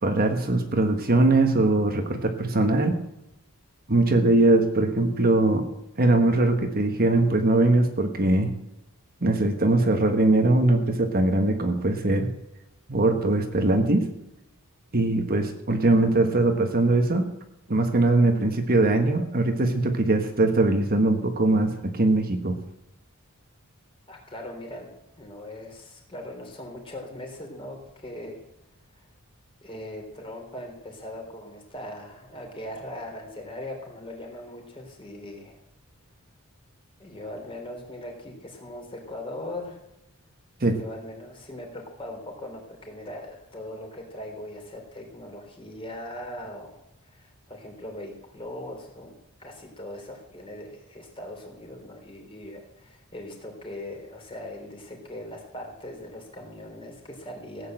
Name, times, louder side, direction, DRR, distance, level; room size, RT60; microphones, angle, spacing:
voice 1, 0.0-2.9 3.9-5.7 6.0-8.5 9.2-12.3 12.9-14.1 14.9-17.3 17.7-22.6 40.6-40.8, right 2 dB, 45° right, 5 dB, 1.4 m, -21 dB
voice 2, 24.1-24.9 25.2-28.4 28.9-29.0 29.6-35.6 37.0-39.8 40.7-46.8 47.1-49.1 49.4-57.7, left 1 dB, 25° left, 1 dB, 3.5 m, -40 dB
16.0 x 8.5 x 7.8 m, 0.87 s
head